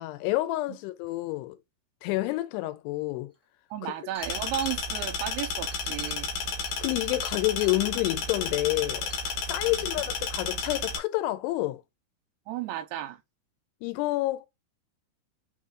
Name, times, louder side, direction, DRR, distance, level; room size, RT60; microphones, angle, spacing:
voice 1, 0.0-1.6 2.0-3.3 3.8-3.9 6.8-9.1 9.5-11.8 13.8-14.5, left 18 dB, 90° left, 2.7 m, -29 dB
Chink clink, 3.4-3.5 3.8-7.8 8.6-8.7 9.1-9.3, left 1 dB, 10° left, 0.9 m, -50 dB
voice 2, 3.7-6.3 9.7-9.9 12.5-13.2, right 12 dB, 80° right, 2.6 m, -34 dB
sound 1, 4.2-11.0, left 5 dB, 65° left, 2.5 m, -32 dB
5.8 x 3.7 x 2.4 m
omnidirectional pair, 4.7 m